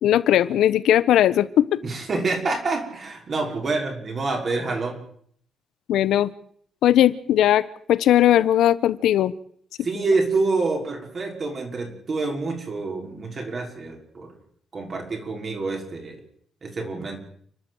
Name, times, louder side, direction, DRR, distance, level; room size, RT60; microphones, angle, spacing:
voice 1, 0.0-1.8 5.9-6.3 6.8-7.6 7.9-9.3, left 12 dB, 85° left, 16 dB, 1.1 m, -18 dB
voice 2, 1.8-5.0 9.8-14.3 14.7-16.2 16.6-17.2, right 3 dB, 35° right, 2 dB, 5.6 m, -27 dB
29.5 x 12.5 x 8.1 m, 0.63 s
cardioid pair, 150°, 0 cm